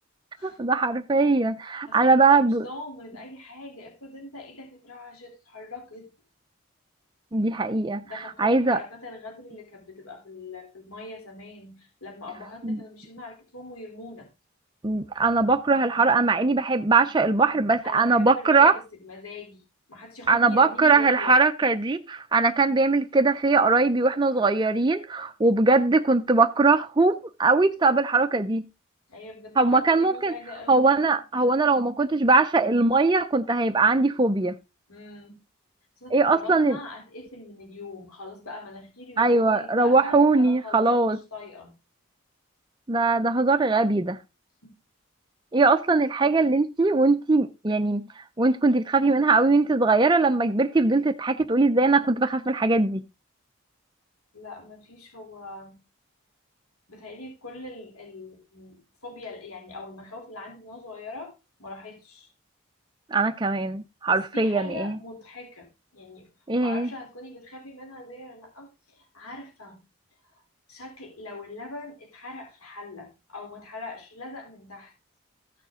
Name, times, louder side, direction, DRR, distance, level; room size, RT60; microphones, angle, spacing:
voice 1, 0.4-2.6 7.3-8.0 8.4-8.8 12.6-12.8 14.8-18.7 20.3-28.7 29.6-30.3 30.7-34.5 36.1-36.8 39.2-41.2 42.9-44.2 45.5-53.0 63.1-65.0 66.5-66.9, right 3 dB, 20° right, 0.5 m, -21 dB
voice 2, 1.9-6.1 8.0-14.3 17.8-19.6 19.9-21.4 29.1-30.8 34.9-35.4 36.0-41.7 44.6-44.8 54.3-55.8 56.9-61.3 61.6-62.3 64.1-65.7 65.9-66.3 66.6-69.8 70.2-70.4 70.7-74.9, left 2 dB, 90° left, 3.4 m, -42 dB
14.5 x 6.7 x 3.7 m
head